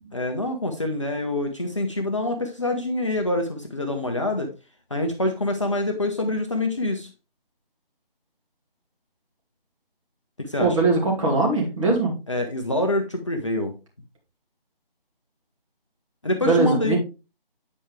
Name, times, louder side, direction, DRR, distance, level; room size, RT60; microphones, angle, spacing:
voice 1, 0.1-4.5 4.9-7.1 10.4-10.8 12.3-13.8 16.2-17.0, left 1 dB, 30° left, 3 dB, 0.7 m, -26 dB
voice 2, 10.6-12.1 16.4-17.0, right 3 dB, 30° right, -2 dB, 2.5 m, -21 dB
8.5 x 4.6 x 3.3 m, 0.29 s
figure-of-eight pair, 160°, 29 cm